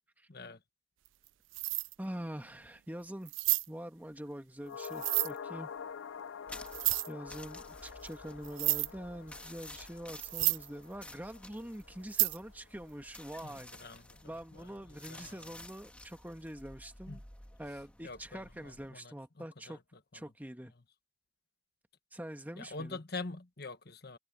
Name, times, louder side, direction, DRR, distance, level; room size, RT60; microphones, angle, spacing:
voice 1, 0.3-0.6 13.4-15.5 17.1-17.2 18.0-19.8 22.6-24.2, left 3 dB, 55° left, 1.4 m, -45 dB
sound 1, 1.1-1.3 1.5-1.9 2.4-2.5 3.3-3.7 4.8-5.3 6.7-7.1 8.1-8.2 8.4-8.9 9.8-9.9 10.2-10.7 12.1-12.4, right 20 dB, 80° right, 0.4 m, -30 dB
voice 2, 2.0-3.3 3.7-5.7 7.1-13.7 14.2-17.2 17.6-19.8 20.1-20.7 22.1-23.0, equal, 10° right, 1.5 m, -44 dB
sound 2, 4.6-13.1 13.4-13.5, left 6 dB, 80° left, 0.4 m, -47 dB
sound 3, 6.5-18.9, left 1 dB, 5° left, 1.9 m, -53 dB
head